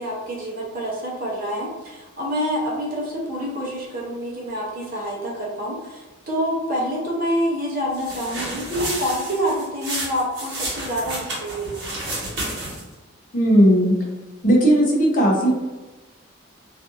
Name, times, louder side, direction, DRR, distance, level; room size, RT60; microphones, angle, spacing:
voice 1, 0.0-12.0, equal, 45° right, -4 dB, 0.7 m, -27 dB
sound 1, 7.9-12.9, right 1 dB, 60° right, 1.2 m, -31 dB
voice 2, 13.3-13.9 14.4-15.5, equal, 40° left, -1 dB, 0.5 m, -16 dB
2.6 x 2.4 x 2.6 m, 1.1 s
head